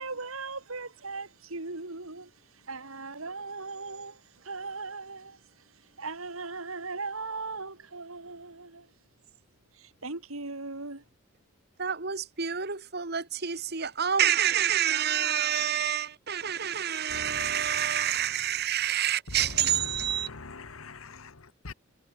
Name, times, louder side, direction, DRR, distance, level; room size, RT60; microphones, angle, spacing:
voice 1, 0.0-8.9 9.7-11.0, right 3 dB, 85° right, 2.9 m, -39 dB
voice 2, 11.8-20.3, right 9 dB, 50° right, 1.9 m, -28 dB
voice 3, 17.1-18.0 19.4-21.7, left 3 dB, 90° left, 1.5 m, -43 dB
head